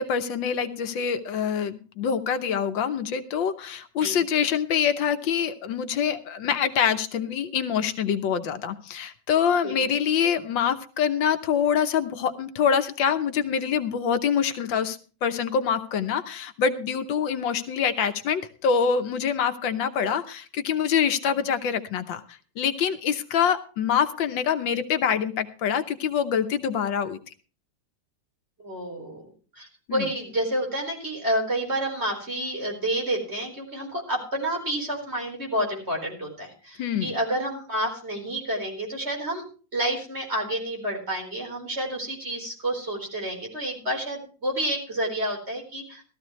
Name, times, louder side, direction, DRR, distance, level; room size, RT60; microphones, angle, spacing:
voice 1, 0.0-22.2 22.6-27.2 29.9-30.1 36.8-37.2, left 7 dB, 80° left, 9 dB, 1.7 m, -25 dB
voice 2, 28.6-29.3 29.6-39.4 39.7-46.0, right 1 dB, 35° right, 1 dB, 4.5 m, -29 dB
16.0 x 13.5 x 3.1 m, 0.38 s
omnidirectional pair, 2.1 m